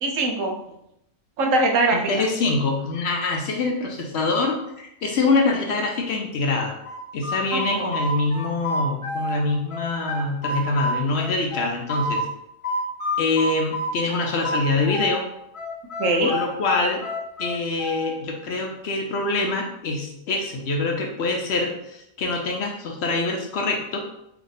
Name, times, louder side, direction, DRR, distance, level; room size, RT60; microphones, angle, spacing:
voice 1, 0.0-0.6 1.4-2.2 7.5-7.8 16.0-16.3, right 2 dB, 80° right, 2 dB, 1.1 m, -22 dB
voice 2, 1.9-6.7 7.1-12.2 13.2-15.2 16.2-17.0 17.4-24.0, left 3 dB, 60° left, 1 dB, 0.8 m, -25 dB
sound 1, 6.8-9.4 9.7-12.2 12.6-15.2 15.5-18.2, left 1 dB, 30° left, 0.7 m, -28 dB
3.4 x 2.7 x 3.9 m, 0.80 s
omnidirectional pair, 1.4 m